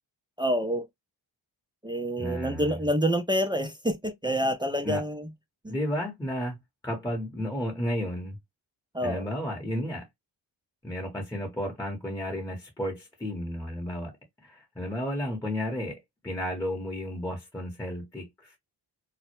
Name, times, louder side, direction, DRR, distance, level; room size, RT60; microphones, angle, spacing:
voice 1, 0.4-0.9 1.8-5.3 5.6-5.7 8.9-9.3, equal, 10° right, 0.4 m, -27 dB
voice 2, 2.2-2.8 4.8-5.0 5.7-6.6 6.8-8.4 9.0-10.0 10.8-14.1 14.4-16.0 16.2-18.5, equal, 10° left, 0.9 m, -32 dB
2.1 x 2.0 x 2.9 m
supercardioid pair, 50°, 47 cm